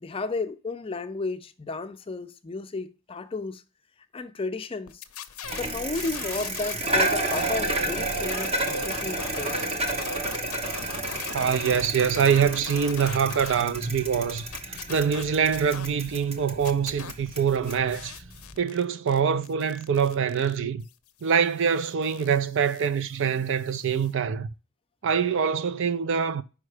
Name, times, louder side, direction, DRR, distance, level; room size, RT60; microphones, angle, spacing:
voice 1, 0.0-3.6 4.1-5.0 5.6-9.7, left 3 dB, 25° left, 0.4 m, -33 dB
sound 1, 4.9-6.9 7.2-13.6 14.0-16.3 16.6-24.1, left 8 dB, 80° left, 0.6 m, -42 dB
Bicycle, 5.4-18.6, right 2 dB, 30° right, 1.0 m, -31 dB
voice 2, 11.3-18.2 18.6-20.9 21.2-24.5 25.0-26.4, right 7 dB, 55° right, 0.4 m, -24 dB
5.5 x 5.0 x 4.8 m
head